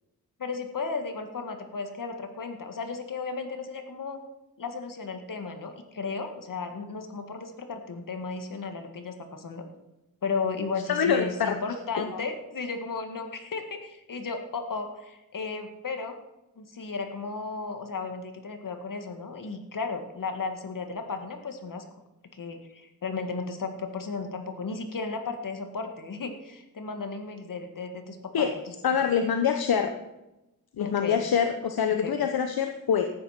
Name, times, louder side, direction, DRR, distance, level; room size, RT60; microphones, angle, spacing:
voice 1, 0.4-4.2 4.6-9.6 10.2-16.2 16.6-21.8 22.3-28.7 30.8-31.2 32.0-32.1, left 4 dB, 60° left, 6 dB, 1.9 m, -34 dB
voice 2, 10.9-11.5 12.0-12.1 28.3-28.5 28.8-29.9 30.8-33.1, left 7 dB, 75° left, 6 dB, 1.0 m, -25 dB
13.5 x 9.5 x 5.9 m, 0.96 s
wide cardioid pair, 90°, 36 cm